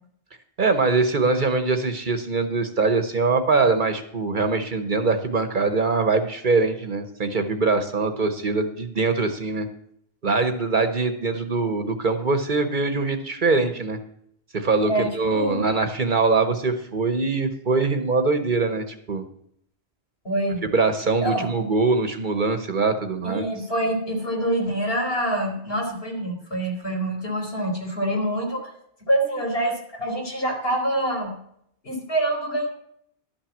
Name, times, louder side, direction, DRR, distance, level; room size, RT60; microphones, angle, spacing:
voice 1, 0.6-9.7 10.2-14.0 14.5-19.2 20.7-23.5, right 3 dB, 50° right, 9 dB, 1.0 m, -23 dB
voice 2, 14.9-15.7 20.2-20.7 21.2-21.5 23.2-28.7 29.1-31.4 31.8-32.7, right 1 dB, 65° left, 0 dB, 3.3 m, -26 dB
12.0 x 6.0 x 7.1 m, 0.70 s
omnidirectional pair, 1.1 m